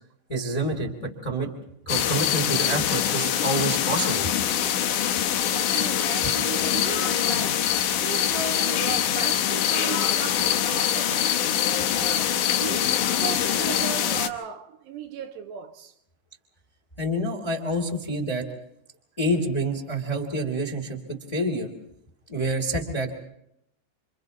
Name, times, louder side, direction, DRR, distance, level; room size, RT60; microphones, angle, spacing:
voice 1, 0.3-1.5 1.8-4.3 6.2-6.3 17.0-18.5 19.2-21.7 22.3-23.1, right 1 dB, 10° left, 1.7 m, -27 dB
sound 1, 1.9-14.3, left 10 dB, 80° left, 1.8 m, -24 dB
voice 2, 5.3-7.7 8.0-12.9 13.2-15.9, right 8 dB, 75° right, 3.1 m, -36 dB
28.5 x 26.5 x 4.1 m
omnidirectional pair, 5.1 m